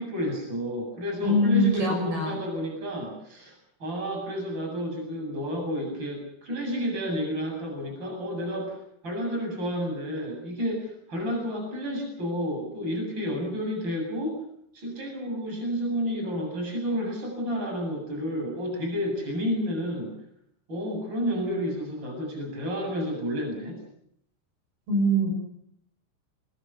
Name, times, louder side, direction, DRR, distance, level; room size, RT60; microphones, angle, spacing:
voice 1, 0.0-3.5 3.8-8.8 9.0-14.4 14.7-20.1 20.7-23.8, equal, 25° right, 2 dB, 8.1 m, -30 dB
voice 2, 1.2-2.4 24.9-25.3, equal, 55° right, 2 dB, 9.2 m, -23 dB
26.5 x 20.5 x 7.0 m, 0.72 s
omnidirectional pair, 5.3 m